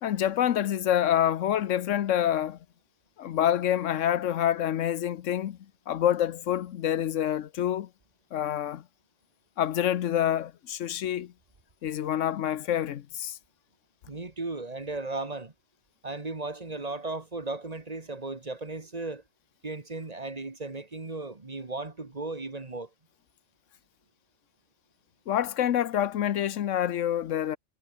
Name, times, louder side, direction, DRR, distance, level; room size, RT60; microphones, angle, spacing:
voice 1, 0.0-2.6 3.2-5.6 5.9-7.9 8.3-8.8 9.6-11.3 11.8-13.4 25.3-27.6, left 11 dB, 85° left, 1.1 m, -27 dB
voice 2, 14.1-15.5 16.0-19.2 19.6-22.9, right 3 dB, 35° right, 1.7 m, -36 dB
omnidirectional pair, 1.2 m